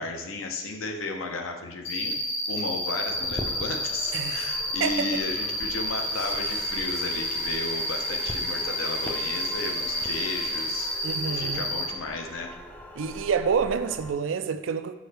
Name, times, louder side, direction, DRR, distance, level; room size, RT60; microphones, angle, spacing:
voice 1, 0.0-2.2 2.5-12.5, left 3 dB, 85° left, 3 dB, 0.8 m, -34 dB
Cricket, 1.8-11.8, left 1 dB, 65° left, 1.4 m, -30 dB
sound 1, 3.1-14.1, left 1 dB, 10° left, 0.4 m, -42 dB
voice 2, 4.1-4.5 4.8-5.1 11.0-11.7 13.0-14.9, right 6 dB, 70° right, 11 dB, 0.4 m, -28 dB
Domestic sounds home sounds, 5.9-11.7, right 5 dB, 50° right, 0.7 m, -43 dB
6.2 x 5.1 x 3.3 m, 1.1 s
head